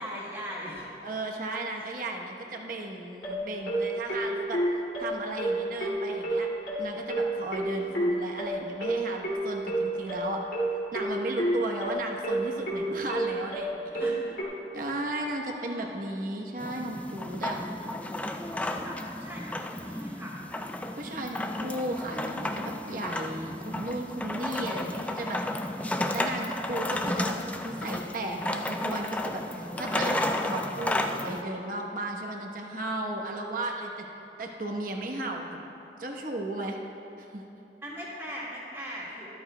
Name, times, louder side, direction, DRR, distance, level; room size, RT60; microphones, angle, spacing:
voice 1, 0.0-0.9 1.8-1.9 7.6-8.0 13.9-14.3 15.4-15.9 18.7-20.4 29.8-30.1 37.8-39.2, equal, 10° right, -12 dB, 1.9 m, -40 dB
voice 2, 1.0-4.6 5.0-6.5 6.8-10.4 10.9-14.1 14.7-17.6 21.0-25.4 26.1-27.4 27.6-34.0 34.4-35.6 36.0-36.8 37.2-37.4, right 2 dB, 50° right, 1 dB, 1.0 m, -35 dB
sound 1, 3.2-14.4, right 1 dB, 75° left, 2.4 m, -29 dB
sound 2, 16.6-31.4, left 1 dB, 10° left, 0.3 m, -32 dB
13.0 x 13.0 x 2.2 m, 2.9 s
head